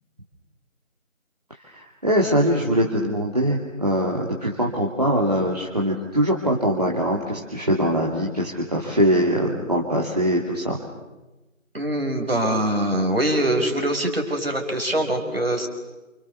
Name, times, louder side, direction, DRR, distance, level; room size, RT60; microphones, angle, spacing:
voice 1, 1.6-10.8, equal, 30° right, -4 dB, 2.9 m, -22 dB
voice 2, 11.7-15.7, right 1 dB, 45° right, 3 dB, 5.5 m, -23 dB
29.5 x 29.0 x 7.0 m, 1.1 s
figure-of-eight pair, 175°, 41 cm